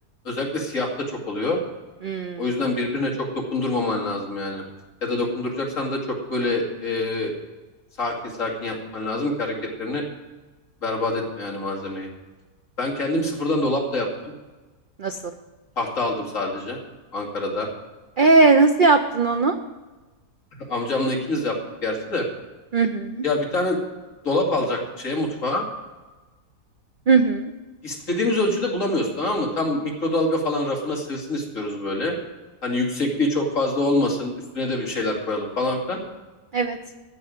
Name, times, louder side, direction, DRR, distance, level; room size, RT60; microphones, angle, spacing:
voice 1, 0.2-1.6 2.4-4.6 5.0-6.0 6.3-7.3 8.0-10.0 10.8-12.1 12.8-14.3 15.8-16.8 17.1-17.7 20.6-22.3 23.2-23.8 24.2-25.7 27.8-32.2 32.6-36.0, left 2 dB, 50° left, -2 dB, 2.9 m, -25 dB
voice 2, 2.0-2.4 15.0-15.2 18.2-19.6 22.7-23.2 27.1-27.5 36.5-36.8, right 4 dB, 70° right, 7 dB, 0.4 m, -18 dB
14.5 x 5.6 x 9.2 m, 1.2 s
omnidirectional pair, 1.7 m